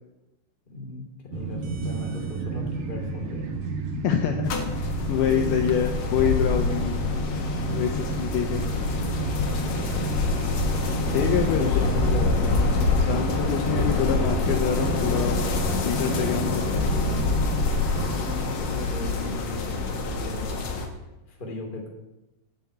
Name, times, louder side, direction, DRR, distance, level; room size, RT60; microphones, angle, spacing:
voice 1, 0.7-3.5 5.2-5.9 9.6-10.2 11.5-12.6 18.2-20.6 21.4-21.9, left 2 dB, 20° left, -1 dB, 1.6 m, -36 dB
sound 1, 1.3-18.3, right 4 dB, 75° right, 2.0 m, -31 dB
voice 2, 4.0-7.0 7.7-8.6 11.1-11.7 13.0-15.4 15.9-16.9, left 9 dB, 90° left, 4 dB, 2.2 m, -26 dB
sound 2, 4.4-20.9, left 3 dB, 75° left, 1.6 m, -26 dB
9.6 x 8.0 x 8.5 m, 0.98 s
omnidirectional pair, 5.6 m